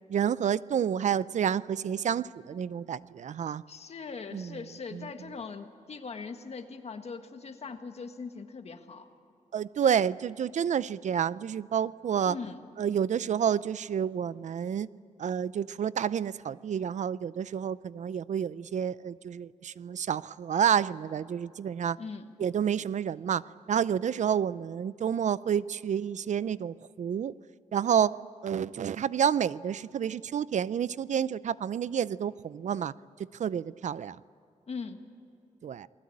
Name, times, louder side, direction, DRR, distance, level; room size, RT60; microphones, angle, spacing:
voice 1, 0.1-3.6 4.3-4.6 4.9-5.1 9.5-12.4 12.8-14.9 15.2-22.0 22.4-23.4 23.7-27.3 27.7-28.2 28.4-32.9 33.4-34.2 35.6-35.9, right 8 dB, 70° right, 18 dB, 0.5 m, -29 dB
voice 2, 3.7-9.1 12.3-12.6 22.0-22.3 34.7-35.0, left 5 dB, 55° left, 6 dB, 1.8 m, -40 dB
28.5 x 20.5 x 8.7 m, 2.6 s
wide cardioid pair, 135°, 13 cm